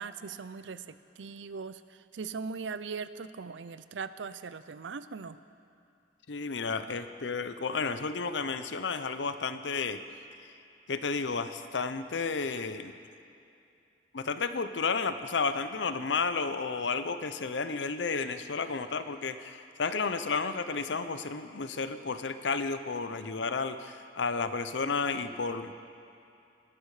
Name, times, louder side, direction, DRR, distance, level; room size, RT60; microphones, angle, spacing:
voice 1, 0.0-5.4, right 5 dB, 80° right, 14 dB, 0.5 m, -40 dB
voice 2, 6.3-10.0 10.9-13.0 14.1-25.7, left 4 dB, 75° left, 11 dB, 0.7 m, -32 dB
20.0 x 12.0 x 4.9 m, 2.6 s
head